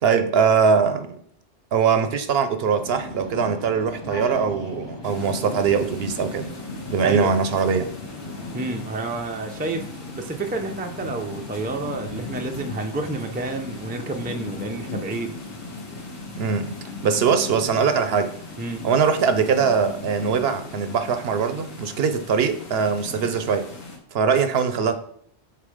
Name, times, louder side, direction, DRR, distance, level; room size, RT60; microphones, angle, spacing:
voice 1, 0.0-1.2 1.7-6.5 6.9-7.9 16.4-16.8 17.0-18.3 18.8-23.7 24.1-25.0, right 6 dB, 70° right, 0.8 m, -21 dB
sound 1, 2.6-16.6, left 1 dB, 30° left, 0.6 m, -41 dB
sound 2, 5.0-24.0, left 3 dB, 80° left, 1.5 m, -37 dB
voice 2, 7.0-7.4 8.5-15.4 18.6-18.9, right 3 dB, 15° right, 0.3 m, -29 dB
5.8 x 4.1 x 4.9 m
omnidirectional pair, 1.1 m